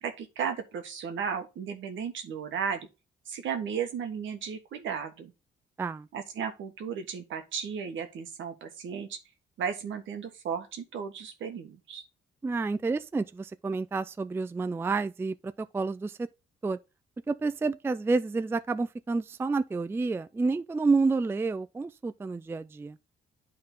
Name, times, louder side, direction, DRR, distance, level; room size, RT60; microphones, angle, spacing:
voice 1, 0.0-2.9 3.3-5.3 6.1-9.2 9.6-12.0, right 7 dB, 75° right, 1.5 m, -35 dB
voice 2, 12.4-16.3 16.6-16.8 17.3-23.0, right 3 dB, 10° right, 0.3 m, -29 dB
9.5 x 3.8 x 3.9 m
cardioid pair, 90°, 20 cm